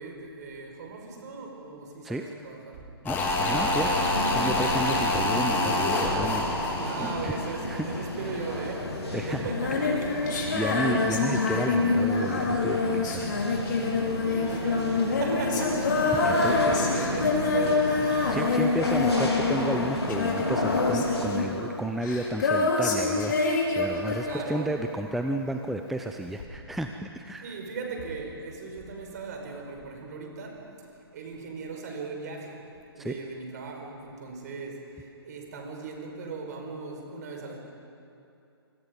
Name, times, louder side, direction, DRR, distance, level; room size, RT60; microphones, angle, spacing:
voice 1, 0.0-2.9 3.4-4.1 6.7-10.5 14.2-18.1 24.2-24.8 27.4-30.7 31.1-32.6 33.0-37.6, right 4 dB, 40° right, 2 dB, 5.1 m, -38 dB
voice 2, 3.0-4.1 4.3-7.4 7.7-8.1 9.1-10.0 10.5-13.5 16.1-16.8 18.1-27.5 33.0-33.2, right 1 dB, ahead, 5 dB, 0.6 m, -32 dB
sound 1, 3.1-8.2 8.5-8.6, left 2 dB, 15° left, 3.7 m, -27 dB
sound 2, 3.9-21.4, left 1 dB, 80° left, 4.3 m, -32 dB
Female singing, 9.5-24.9 26.4-26.5, left 3 dB, 45° left, 5.4 m, -26 dB
27.0 x 25.5 x 5.3 m, 2.7 s
figure-of-eight pair, 125°, 14 cm